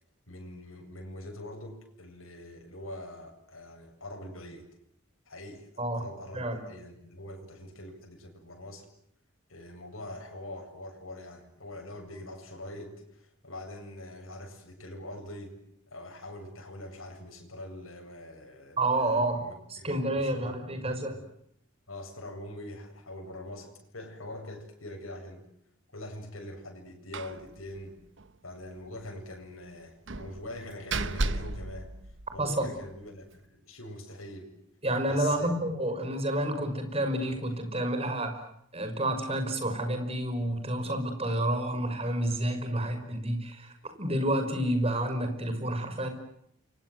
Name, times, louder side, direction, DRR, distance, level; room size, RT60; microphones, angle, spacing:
voice 1, 0.3-4.7 5.3-8.9 9.5-15.6 15.9-21.2 21.9-25.4 25.9-28.0 28.4-31.9 32.3-34.5 35.1-35.5 35.8-35.9, left 1 dB, 80° left, 2 dB, 7.8 m, -43 dB
voice 2, 18.8-19.4 19.7-21.2 32.4-32.7 34.8-38.4 38.7-43.7 44.0-46.1, right 1 dB, 30° right, 7 dB, 5.7 m, -29 dB
Slam, 27.1-27.4 27.7-27.8 28.2-28.3 30.1-32.7, right 2 dB, 60° right, 1.1 m, -34 dB
29.5 x 24.5 x 7.9 m, 0.73 s
head